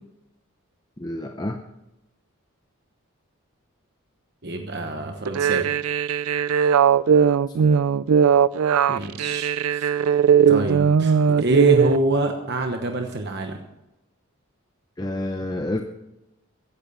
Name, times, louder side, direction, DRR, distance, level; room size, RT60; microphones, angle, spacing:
voice 1, 1.0-1.6 7.5-7.6 15.0-15.8, left 1 dB, 20° left, 4 dB, 0.7 m, -28 dB
voice 2, 4.4-5.7 8.9-10.2 10.5-13.6, right 1 dB, 50° right, 4 dB, 1.1 m, -26 dB
sound 1, 5.3-12.0, right 7 dB, 75° right, 0.4 m, -19 dB
15.5 x 10.5 x 5.5 m, 0.92 s
head